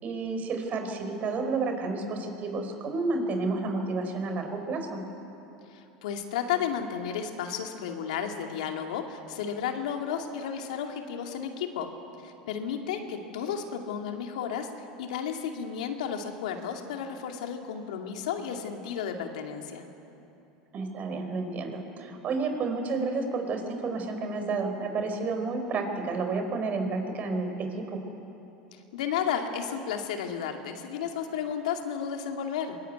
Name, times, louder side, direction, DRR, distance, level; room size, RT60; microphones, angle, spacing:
voice 1, 0.0-5.0 20.7-28.0, right 3 dB, 40° right, 5 dB, 4.9 m, -31 dB
voice 2, 5.7-11.9 12.2-14.7 15.0-19.9 28.9-32.8, left 8 dB, 80° left, 4 dB, 2.5 m, -33 dB
23.0 x 21.0 x 9.4 m, 2.9 s
hypercardioid pair, 100°, 4 cm